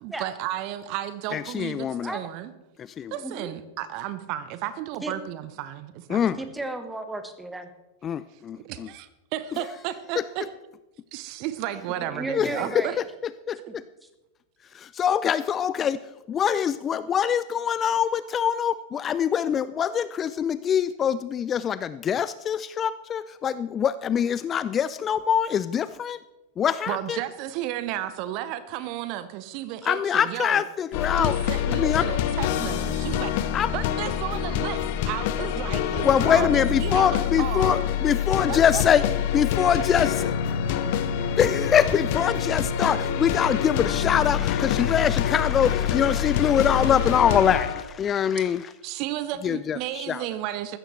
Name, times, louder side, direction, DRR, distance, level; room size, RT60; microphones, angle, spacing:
voice 1, 0.0-2.5 3.1-6.5 8.6-10.5 11.1-12.9 13.6-13.7 26.9-30.6 31.2-33.3 33.7-37.1 37.4-37.8 38.5-38.8 48.8-50.8, right 12 dB, 45° right, 13 dB, 0.8 m, -33 dB
voice 2, 1.3-2.1 2.8-3.1 6.1-6.4 8.0-8.9 10.2-10.3 12.3-12.8 13.5-13.8 14.7-16.0 16.3-26.2 26.6-27.2 29.8-31.4 31.7-32.1 33.5-33.7 36.0-39.0 39.3-40.3 41.4-48.7 49.4-50.2, left 8 dB, 25° left, 15 dB, 0.4 m, -24 dB
voice 3, 6.4-7.7 12.1-13.0, right 2 dB, 5° right, 8 dB, 1.4 m, -33 dB
sound 1, 30.9-47.8, left 9 dB, 50° left, 0.9 m, -26 dB
sound 2, 38.3-46.9, left 6 dB, 75° right, 2.2 m, -37 dB
15.0 x 13.5 x 3.3 m, 1.0 s
figure-of-eight pair, 90°, 0 cm